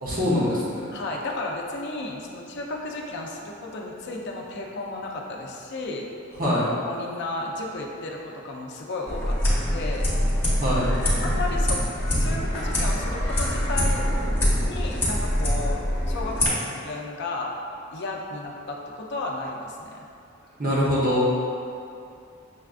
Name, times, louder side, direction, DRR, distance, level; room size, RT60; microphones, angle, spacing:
voice 1, 0.0-1.0 6.4-6.7 10.6-10.9 20.6-21.3, left 1 dB, 45° right, -7 dB, 0.9 m, -23 dB
voice 2, 0.9-6.1 6.8-10.1 11.2-11.8 12.2-14.0 14.6-15.8 16.1-17.5 17.9-20.0, left 2 dB, 55° left, 0 dB, 0.5 m, -33 dB
sound 1, 9.1-16.5, equal, 10° left, 0.9 m, -24 dB
6.6 x 2.3 x 2.4 m, 2.6 s
head